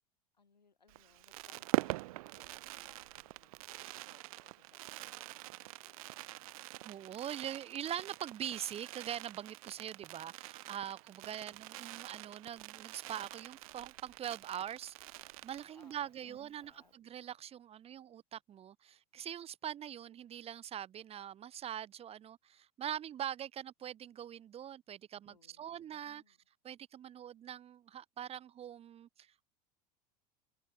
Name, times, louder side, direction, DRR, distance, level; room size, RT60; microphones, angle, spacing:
voice 1, 0.3-3.5 3.8-6.2 11.2-11.6 15.7-16.9 25.2-26.4, left 5 dB, 80° left, 2.4 m, -68 dB
Fireworks, 0.9-16.1 16.4-16.5 16.6-16.9, right 20 dB, 55° right, 1.0 m, -44 dB
voice 2, 6.8-26.4 26.6-29.4, right 10 dB, 30° right, 0.9 m, -43 dB
figure-of-eight pair, 75°, 21 cm